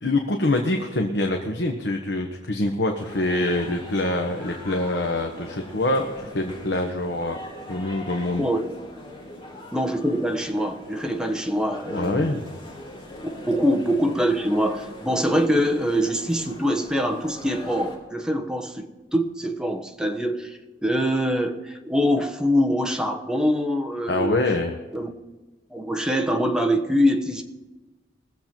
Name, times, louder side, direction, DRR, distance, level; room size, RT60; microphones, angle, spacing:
voice 1, 0.0-7.4 7.7-8.4 11.9-12.4 24.1-24.8, left 2 dB, 70° left, 3 dB, 1.1 m, -25 dB
sound 1, 3.0-18.0, left 1 dB, 30° left, 2.8 m, -41 dB
voice 2, 8.4-8.7 9.7-12.4 13.3-24.4 24.9-25.1 25.7-27.4, equal, 5° right, 4 dB, 1.1 m, -24 dB
21.0 x 7.5 x 4.5 m, 1.2 s
head